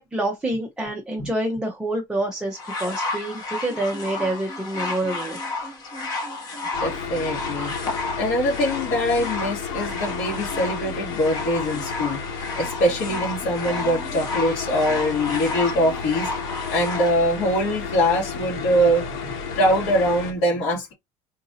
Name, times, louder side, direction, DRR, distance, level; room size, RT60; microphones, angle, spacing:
voice 1, 0.0-5.4, right 1 dB, 5° right, 0.7 m, -27 dB
sound 1, 2.6-17.2 18.0-18.1, left 2 dB, 25° left, 1.2 m, -32 dB
sound 2, 6.7-20.3, left 6 dB, 75° left, 1.5 m, -32 dB
voice 2, 6.8-12.2 12.6-16.3 16.7-20.9, equal, 60° left, 2.3 m, -23 dB
3.9 x 2.6 x 4.1 m
cardioid pair, 180°, 14 cm